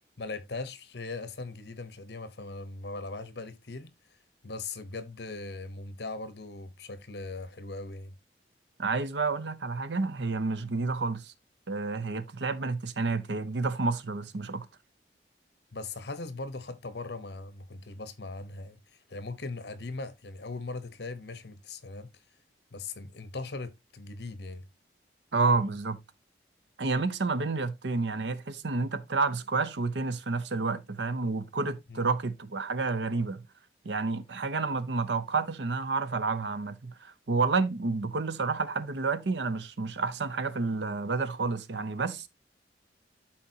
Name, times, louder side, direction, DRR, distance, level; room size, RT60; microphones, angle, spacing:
voice 1, 0.2-3.9 4.4-8.1 15.7-22.1 22.7-24.7 25.6-25.7 31.9-32.1, left 3 dB, 70° left, 1.0 m, -39 dB
voice 2, 8.8-11.3 11.7-14.7 25.3-26.0 26.8-33.4 33.8-42.3, right 4 dB, 80° right, 0.7 m, -30 dB
12.0 x 4.3 x 2.8 m
head